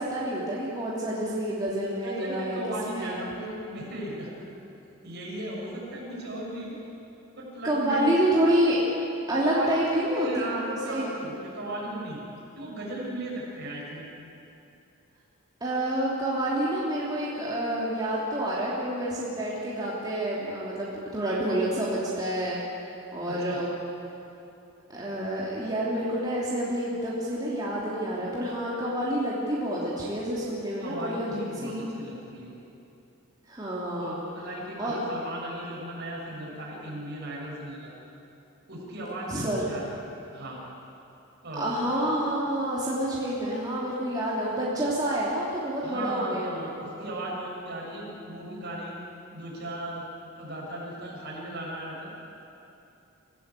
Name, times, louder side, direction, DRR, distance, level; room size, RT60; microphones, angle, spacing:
voice 1, 0.0-2.6 2.9-3.3 7.6-8.8 9.3-11.1 15.6-22.6 23.1-23.7 24.9-31.8 33.5-34.2 34.8-35.0 39.3-39.6 41.6-46.7, right 1 dB, 20° right, -7 dB, 3.2 m, -28 dB
voice 2, 2.0-4.6 5.0-6.8 7.3-8.1 9.4-12.2 12.5-14.1 23.3-23.6 30.8-32.5 34.0-37.9 38.7-40.1 40.3-40.6 41.4-41.7 42.0-42.1 45.8-48.9 49.3-50.0 50.4-52.3, right 1 dB, 55° right, -4 dB, 6.8 m, -36 dB
25.5 x 15.5 x 8.5 m, 2.8 s
head